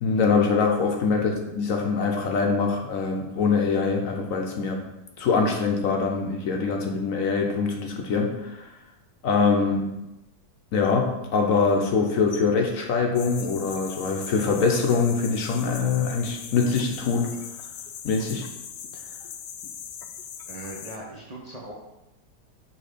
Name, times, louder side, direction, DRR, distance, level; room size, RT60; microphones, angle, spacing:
voice 1, 0.0-4.9 5.2-8.7 9.2-9.9 10.7-17.4 18.0-18.5, left 4 dB, 65° left, 2 dB, 1.0 m, -24 dB
sound 1, 13.1-21.0, left 8 dB, 80° left, 1.2 m, -40 dB
voice 2, 20.5-21.7, right 2 dB, 35° right, -4 dB, 0.7 m, -39 dB
6.9 x 3.3 x 4.9 m, 0.94 s
omnidirectional pair, 1.7 m